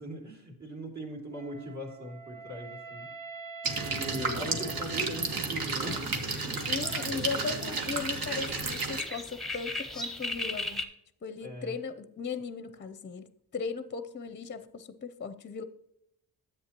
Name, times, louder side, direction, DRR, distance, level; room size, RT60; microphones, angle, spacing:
voice 1, 0.0-3.1 3.8-6.1 6.4-6.6 6.9-7.0 11.4-11.7, right 1 dB, 50° right, 2.9 m, -40 dB
Wind instrument woodwind instrument, 1.3-5.5, right 4 dB, 20° right, 2.4 m, -45 dB
sound 1, 3.6-9.0, right 3 dB, 65° right, 1.3 m, -32 dB
voice 2, 4.2-4.7 6.7-10.9 11.2-15.6, left 5 dB, 30° left, 0.6 m, -37 dB
sound 2, 5.8-10.8, left 2 dB, ahead, 0.8 m, -39 dB
10.0 x 8.0 x 2.9 m
cardioid pair, 90°, 38 cm